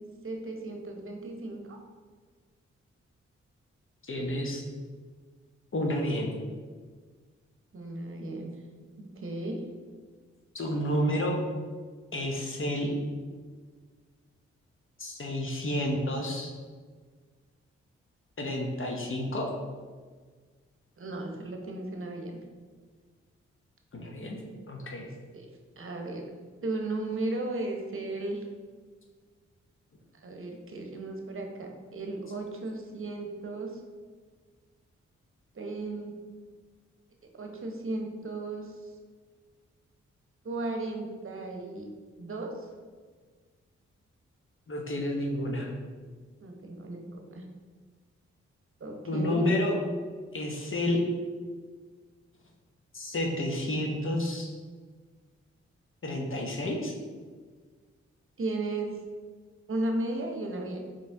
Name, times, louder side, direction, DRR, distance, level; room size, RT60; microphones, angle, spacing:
voice 1, 0.2-1.8 7.7-8.5 9.0-9.6 21.0-22.4 25.3-25.5 25.8-26.2 26.6-28.4 30.2-33.7 35.5-36.1 37.3-38.9 40.4-41.9 42.2-42.7 46.4-47.4 48.8-49.4 58.4-58.9 59.7-60.8, right 2 dB, 45° right, 2 dB, 0.9 m, -35 dB
voice 2, 4.0-4.6 5.7-6.3 10.5-11.4 12.1-12.9 15.0-16.5 18.4-19.5 23.9-24.4 24.7-25.1 44.7-45.7 49.1-49.8 50.3-51.0 52.9-54.5 56.0-56.9, left 1 dB, 45° left, 1 dB, 0.8 m, -30 dB
4.2 x 3.1 x 3.4 m, 1.5 s
supercardioid pair, 40°, 29 cm